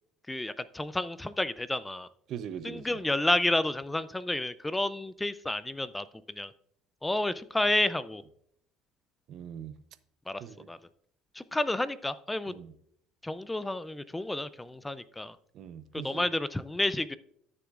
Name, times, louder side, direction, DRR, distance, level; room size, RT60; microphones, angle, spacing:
voice 1, 0.3-2.1 2.6-6.1 6.4-6.5 7.0-8.2 10.3-10.8 11.3-12.5 13.2-15.4 15.9-17.2, left 2 dB, 10° left, 15 dB, 0.4 m, -30 dB
voice 2, 2.3-3.0 9.3-9.7 10.4-10.7 12.5-12.7 15.5-16.3, right 8 dB, 55° right, 13 dB, 0.7 m, -41 dB
13.0 x 6.9 x 2.4 m, 0.70 s
cardioid pair, 115°, 0 cm